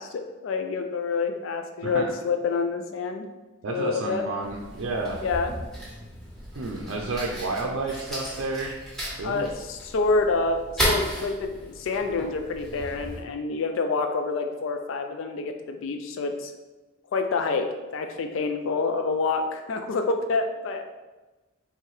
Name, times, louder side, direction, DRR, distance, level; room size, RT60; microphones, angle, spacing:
voice 1, 0.0-3.2 3.7-4.2 5.2-5.5 9.2-16.5 17.1-17.7 17.9-20.8, left 4 dB, 70° left, 6 dB, 0.4 m, -27 dB
voice 2, 3.6-5.2 6.5-8.8 9.2-9.5, right 3 dB, 75° right, 0 dB, 0.5 m, -30 dB
Fire, 4.4-13.2, equal, 5° left, 1.4 m, -34 dB
4.6 x 3.3 x 3.1 m, 1.1 s
head